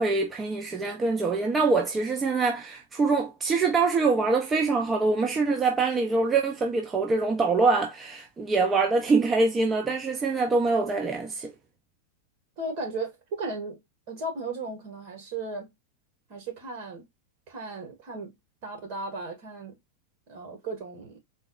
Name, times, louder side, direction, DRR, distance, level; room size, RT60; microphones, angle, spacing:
voice 1, 0.0-11.5, right 3 dB, 20° right, 0.7 m, -24 dB
voice 2, 12.6-13.8 14.1-15.7 16.3-17.1 17.5-18.4 18.6-19.8 20.3-21.2, right 2 dB, 55° right, 2.2 m, -35 dB
4.1 x 2.0 x 3.8 m
hypercardioid pair, 105°, 0 cm